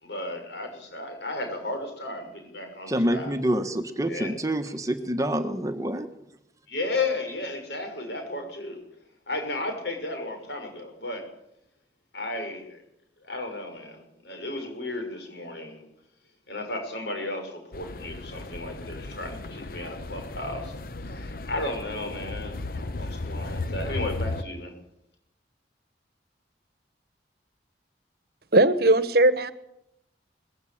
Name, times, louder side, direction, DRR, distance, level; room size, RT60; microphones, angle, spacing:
voice 1, 0.0-3.3 4.1-4.3 6.7-8.8 9.3-11.3 12.1-12.8 13.2-15.8 16.5-24.7, left 2 dB, 70° left, 5 dB, 6.1 m, -34 dB
voice 2, 2.9-6.1, right 1 dB, 20° right, 7 dB, 1.4 m, -27 dB
sound 1, 17.7-24.4, left 2 dB, 50° left, 0.9 m, -35 dB
voice 3, 28.5-29.5, right 2 dB, 60° right, 14 dB, 1.2 m, -19 dB
20.5 x 16.0 x 8.6 m, 0.80 s
head